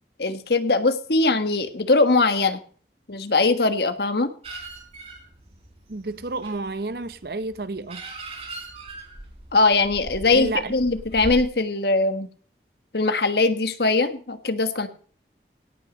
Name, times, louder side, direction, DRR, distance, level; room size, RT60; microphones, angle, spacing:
voice 1, 0.2-2.6 3.1-4.3 9.5-12.3 12.9-14.9, left 3 dB, 70° left, 1.4 m, -21 dB
sound 1, 4.4-11.4, right 2 dB, 35° right, 3.9 m, -40 dB
voice 2, 5.9-8.0 10.3-10.7, right 3 dB, 60° right, 0.8 m, -30 dB
17.5 x 6.4 x 6.3 m
head